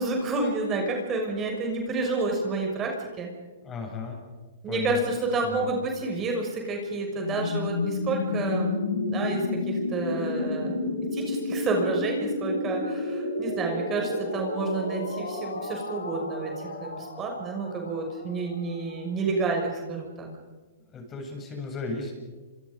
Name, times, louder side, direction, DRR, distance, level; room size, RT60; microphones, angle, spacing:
voice 1, 0.0-3.3 4.6-8.8 9.0-10.7 11.1-20.3, right 3 dB, 25° right, 2 dB, 6.3 m, -29 dB
voice 2, 3.6-4.2 4.7-5.0 5.4-5.7 20.9-22.1, left 3 dB, 25° left, 2 dB, 7.9 m, -35 dB
sound 1, 7.1-18.9, left 3 dB, 90° left, 5.7 m, -31 dB
28.5 x 26.5 x 5.4 m, 1.3 s
hypercardioid pair, 120°, 0 cm